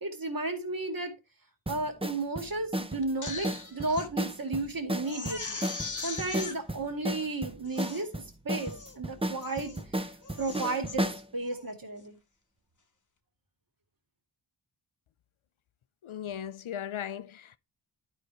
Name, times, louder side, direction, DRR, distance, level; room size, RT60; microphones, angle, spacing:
voice 1, 0.0-1.1 1.7-5.6 6.0-10.1 10.4-12.2, right 2 dB, 45° right, 2.1 m, -34 dB
sound 1, 1.7-11.3, right 1 dB, 10° right, 0.7 m, -34 dB
Crying sobbing, 3.0-4.1 4.5-4.6 5.0-6.6 7.2-7.3 7.7-8.1 8.6-9.0 9.4-9.8 10.2-11.0 11.4-11.7, left 4 dB, 40° left, 1.0 m, -40 dB
voice 2, 16.0-17.6, left 9 dB, 75° left, 0.7 m, -37 dB
12.0 x 5.1 x 3.1 m
wide cardioid pair, 65°, 49 cm